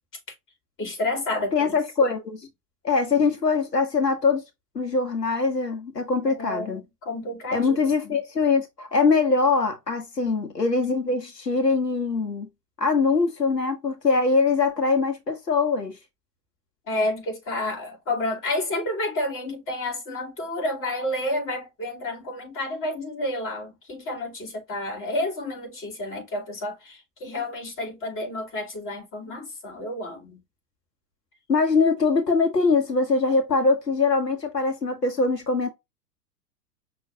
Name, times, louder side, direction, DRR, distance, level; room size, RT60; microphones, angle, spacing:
voice 1, 0.8-1.8 6.3-7.8 8.0-8.2 16.9-30.4, left 1 dB, 25° left, 3.1 m, -30 dB
voice 2, 1.5-2.4 2.8-4.4 4.7-6.8 7.5-12.5 12.8-16.0 31.5-35.7, left 4 dB, 85° left, 1.6 m, -22 dB
6.1 x 3.0 x 2.7 m
figure-of-eight pair, 100°, 48 cm